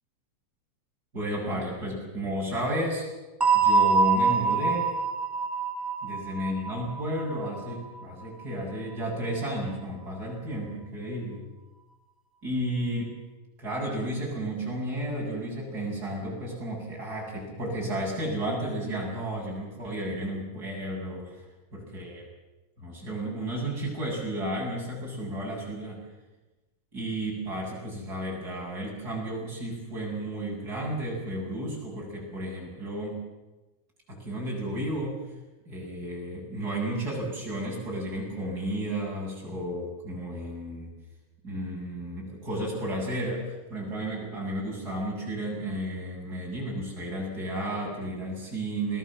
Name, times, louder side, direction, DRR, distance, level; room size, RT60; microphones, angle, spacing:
voice 1, 1.1-3.0 3.5-4.9 6.0-11.4 12.4-13.1 13.6-21.4 21.9-22.2 22.8-26.0 26.9-33.2 34.1-35.2 35.6-40.9 41.4-49.0, right 1 dB, 25° right, -2 dB, 8.4 m, -32 dB
sound 1, 3.4-8.0, right 5 dB, 5° right, 3.7 m, -25 dB
27.5 x 19.5 x 7.6 m, 1.1 s
omnidirectional pair, 4.0 m